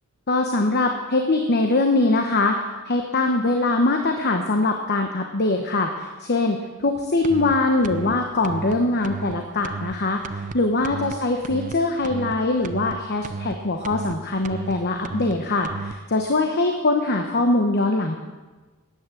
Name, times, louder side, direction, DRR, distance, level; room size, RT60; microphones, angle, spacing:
voice 1, 0.3-18.1, left 2 dB, 50° left, 4 dB, 1.1 m, -22 dB
sound 1, 7.2-7.5 7.8-8.1 8.4-8.7 9.0-9.3 9.6-9.9 10.2-10.5 10.8-11.1 11.4-11.7 12.0-12.3 12.6-12.9 13.2-13.5 13.8-14.1 14.4-14.7 15.0-15.3 15.6-15.9, right 4 dB, 35° right, 0.5 m, -32 dB
13.0 x 9.6 x 7.9 m, 1.3 s
head